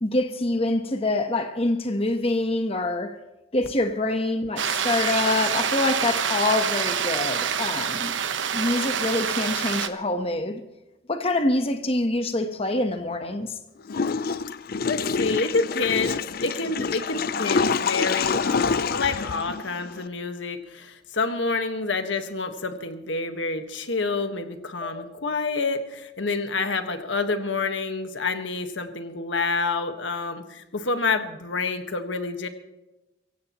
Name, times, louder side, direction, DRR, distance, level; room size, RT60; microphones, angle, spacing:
voice 1, 0.0-3.2 3.5-8.1 8.5-10.6 11.1-13.5 24.8-25.0, left 2 dB, 30° left, 1.1 m, -25 dB
sound 1, 4.6-9.9, right 7 dB, 80° right, 1.0 m, -26 dB
Water / Toilet flush, 13.9-20.1, left 5 dB, 55° left, 0.5 m, -27 dB
voice 2, 14.8-32.5, left 3 dB, 80° left, 1.5 m, -28 dB
24.0 x 15.5 x 3.0 m
head